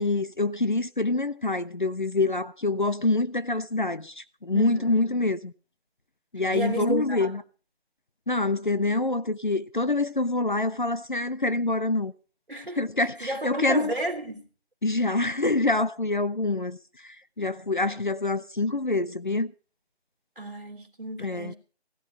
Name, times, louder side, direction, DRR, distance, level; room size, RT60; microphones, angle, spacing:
voice 1, 0.0-5.5 6.3-7.4 8.3-12.1 12.8-13.9 14.8-19.5 21.2-21.5, left 2 dB, 45° left, 0.6 m, -26 dB
voice 2, 4.5-5.0 6.5-7.4 12.5-12.8 13.2-14.5 20.4-21.6, right 2 dB, 50° right, 2.8 m, -33 dB
16.5 x 11.5 x 4.9 m
figure-of-eight pair, 175°, 33 cm